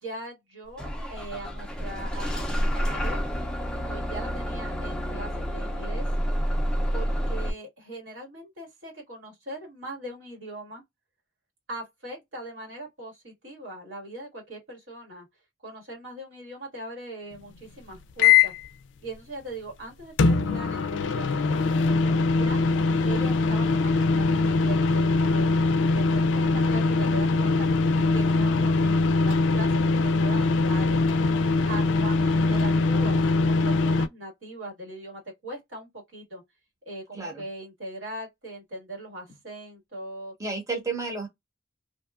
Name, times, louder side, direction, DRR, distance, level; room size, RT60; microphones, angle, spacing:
voice 1, 0.0-3.2 3.9-6.1 6.9-10.8 11.7-15.3 15.6-18.5 19.0-22.6 23.0-27.8 28.1-31.0 31.7-36.4 36.9-40.3, right 1 dB, 85° right, 1.7 m, -40 dB
Bus / Engine starting, 0.8-7.5, equal, 5° left, 0.4 m, -29 dB
sound 1, 18.2-18.7 20.2-34.1, left 3 dB, 75° left, 0.3 m, -22 dB
voice 2, 37.1-37.4 40.4-41.3, right 3 dB, 15° right, 0.8 m, -31 dB
2.7 x 2.2 x 2.4 m
head